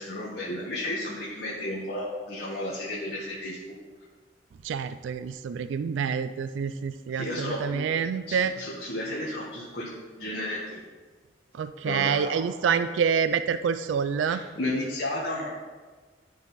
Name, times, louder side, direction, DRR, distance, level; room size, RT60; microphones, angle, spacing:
voice 1, 0.0-3.7 7.2-7.8 8.3-9.9 10.2-10.8 11.8-12.4 12.7-12.8 14.2-15.5, left 1 dB, 55° left, -6 dB, 1.2 m, -33 dB
voice 2, 4.6-8.5 11.5-14.4, right 6 dB, 80° right, 11 dB, 0.3 m, -27 dB
11.5 x 4.0 x 4.0 m, 1.4 s
head